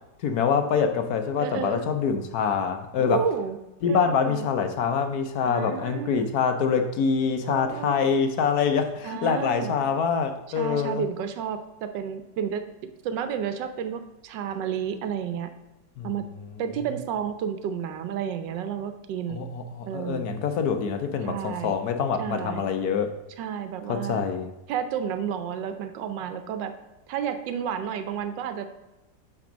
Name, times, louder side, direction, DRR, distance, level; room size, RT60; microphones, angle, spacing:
voice 1, 0.2-3.2 3.8-11.0 16.0-16.1 19.3-23.2 23.9-24.5, left 6 dB, 65° left, 6 dB, 1.1 m, -25 dB
voice 2, 1.4-1.8 3.0-3.6 3.9-4.5 5.4-6.3 7.4-7.9 9.0-9.7 10.6-12.6 13.0-15.5 16.0-16.2 16.6-19.5 19.9-20.2 21.2-21.7 22.2-22.7 23.4-24.2 24.7-26.7 27.1-28.7, right 8 dB, 90° right, 9 dB, 1.3 m, -31 dB
8.7 x 3.5 x 5.0 m, 1.0 s
omnidirectional pair, 1.9 m